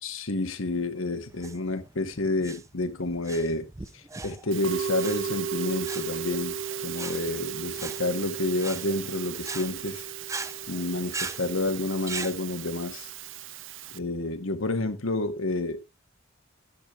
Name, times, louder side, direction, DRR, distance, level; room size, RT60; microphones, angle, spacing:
voice 1, 0.0-3.7 4.2-6.6 6.8-10.1 10.7-13.1 13.9-15.9, left 2 dB, 85° left, 1.2 m, -29 dB
sound 1, 1.3-12.4, right 4 dB, 15° right, 0.5 m, -40 dB
Musical instrument, 4.5-14.0, right 7 dB, 65° right, 0.7 m, -35 dB
13.5 x 9.9 x 2.4 m
head